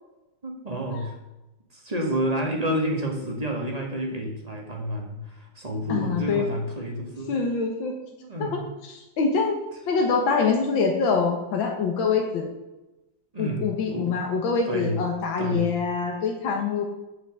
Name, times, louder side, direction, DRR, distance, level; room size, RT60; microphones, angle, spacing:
voice 1, 0.4-1.1 1.7-7.4 8.2-8.7 13.3-14.2 14.7-15.0 15.4-15.7, equal, 20° right, 1 dB, 1.6 m, -29 dB
voice 2, 5.9-6.5 7.3-7.9 8.4-8.6 8.9-9.6 9.9-12.5 13.4-16.8, left 5 dB, 85° left, 2 dB, 2.0 m, -25 dB
8.2 x 6.0 x 7.6 m, 1.0 s
omnidirectional pair, 2.1 m